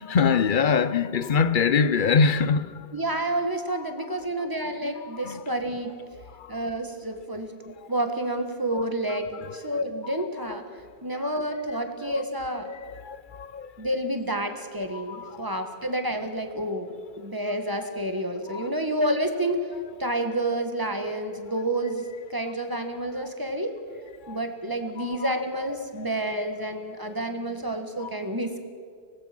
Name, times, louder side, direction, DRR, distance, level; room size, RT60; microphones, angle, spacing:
voice 1, 0.0-2.9 3.8-3.9 4.8-5.4 6.3-6.6 7.7-7.9 8.7-8.8 9.1-10.6 11.1-11.3 12.1-12.2 12.6-13.9 14.9-15.6 18.5-18.7 24.2-24.4 25.0-25.3 25.7-26.1 28.0-28.1, left 5 dB, 55° left, 0.8 m, -26 dB
voice 2, 2.9-5.9 6.5-7.6 7.9-10.6 11.0-12.7 13.8-19.7 20.0-22.0 22.3-23.7 24.3-28.6, right 1 dB, 20° right, 1.8 m, -29 dB
24.5 x 18.5 x 6.2 m
omnidirectional pair, 1.1 m